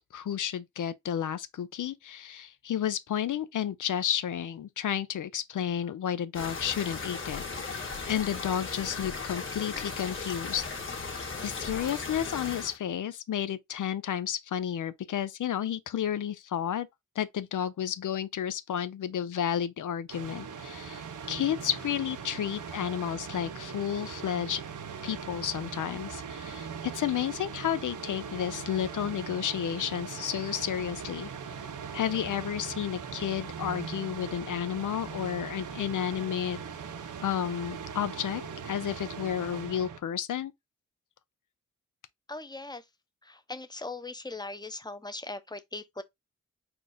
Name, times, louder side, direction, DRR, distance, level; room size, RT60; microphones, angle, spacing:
voice 1, 0.1-10.6 11.0-11.1 11.4-16.9 17.2-24.6 25.0-31.6 31.9-36.6 37.2-40.5, left 9 dB, 80° left, 0.5 m, -32 dB
sound 1, 6.3-12.8, left 4 dB, 40° left, 1.7 m, -37 dB
sound 2, 20.1-40.0, right 6 dB, 85° right, 0.7 m, -40 dB
voice 2, 42.3-42.9 43.2-46.0, left 2 dB, 15° left, 0.7 m, -39 dB
4.4 x 2.5 x 4.9 m
wide cardioid pair, 80°, 31 cm